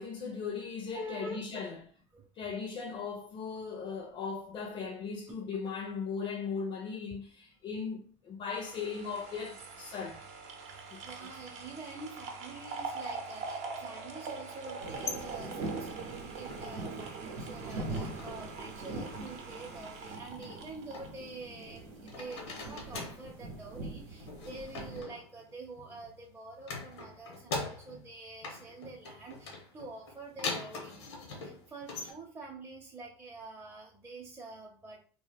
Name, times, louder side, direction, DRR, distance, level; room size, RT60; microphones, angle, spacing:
voice 1, 0.0-1.7 2.4-10.2 10.9-11.0, left 5 dB, 40° left, 0.5 m, -38 dB
voice 2, 0.9-1.6 2.1-2.3 5.3-5.4 10.7-30.9 31.4-35.0, right 2 dB, 15° right, 0.6 m, -47 dB
sound 1, 8.5-21.8 22.1-22.2, right 4 dB, 55° right, 0.7 m, -43 dB
sound 2, 14.8-16.9 17.3-18.5 18.8-19.4 20.4-21.8 22.1-23.3 24.2-26.2 26.6-28.1 28.4-32.1, left 3 dB, 85° left, 0.8 m, -42 dB
sound 3, 14.8-25.0, right 2 dB, 85° right, 0.7 m, -43 dB
2.2 x 2.0 x 3.3 m
hypercardioid pair, 90°, 14 cm